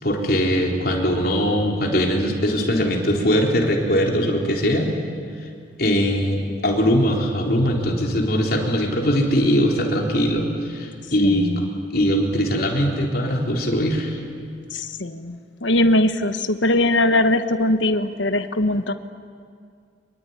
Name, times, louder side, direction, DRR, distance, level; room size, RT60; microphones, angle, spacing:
voice 1, 0.0-4.9 5.8-11.5 11.9-14.2, equal, 50° left, 0 dB, 4.0 m, -21 dB
voice 2, 11.2-11.7 14.7-18.9, left 1 dB, 80° left, 9 dB, 1.3 m, -21 dB
25.0 x 23.0 x 9.7 m, 2.3 s
head